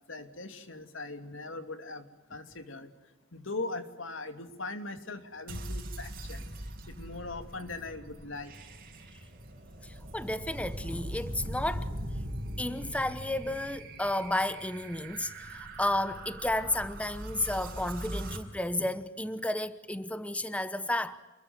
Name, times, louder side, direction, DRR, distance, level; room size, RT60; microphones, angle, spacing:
voice 1, 0.1-2.9 3.3-6.4 6.9-8.5, left 3 dB, 75° left, 2.7 m, -40 dB
sound 1, 5.5-18.4, right 1 dB, 50° right, 5.2 m, -41 dB
voice 2, 9.8-11.9 12.6-21.2, left 1 dB, 5° left, 0.9 m, -32 dB
28.5 x 21.5 x 9.6 m
head